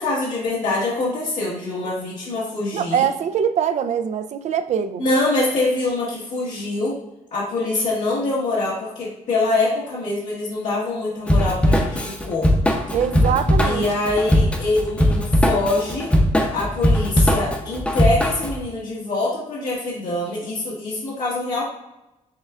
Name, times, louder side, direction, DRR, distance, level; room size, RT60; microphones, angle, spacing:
voice 1, 0.0-3.1 5.0-7.0 7.3-12.5 13.6-16.1 16.5-21.6, left 2 dB, 85° left, 1.3 m, -24 dB
voice 2, 2.7-5.1 12.9-13.8, right 8 dB, 65° right, 0.4 m, -23 dB
Drum kit / Drum, 11.3-18.6, equal, 10° left, 0.6 m, -19 dB
6.4 x 3.4 x 2.4 m
cardioid pair, 120°, 13 cm